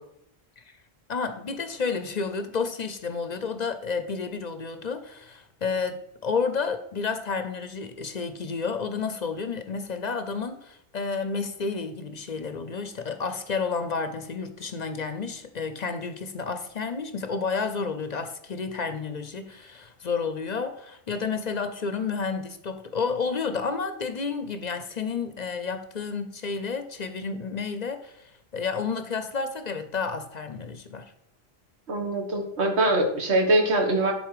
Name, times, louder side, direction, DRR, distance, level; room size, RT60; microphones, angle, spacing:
voice 1, 1.1-31.1, left 5 dB, 45° left, 9 dB, 0.7 m, -31 dB
voice 2, 31.9-34.1, right 2 dB, 75° right, 3 dB, 1.7 m, -23 dB
10.5 x 4.0 x 4.9 m, 0.77 s
omnidirectional pair, 1.1 m